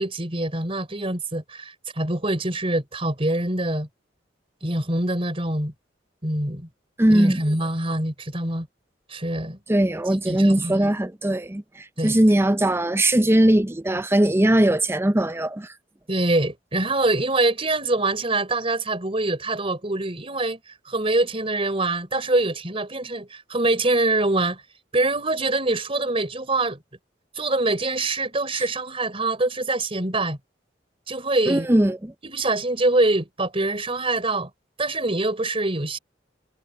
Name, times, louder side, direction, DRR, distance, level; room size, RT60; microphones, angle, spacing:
voice 1, 0.0-3.9 4.6-5.7 6.2-6.7 7.1-8.7 9.1-9.6 10.1-10.9 12.0-12.1 16.1-20.6 20.8-24.6 24.9-26.8 27.3-30.4 31.1-31.7 32.2-34.5 34.8-36.0, right 2 dB, 30° right, 5.0 m, -24 dB
voice 2, 7.0-7.4 9.7-11.6 12.0-15.7 31.5-32.0, right 1 dB, 15° right, 0.6 m, -19 dB
head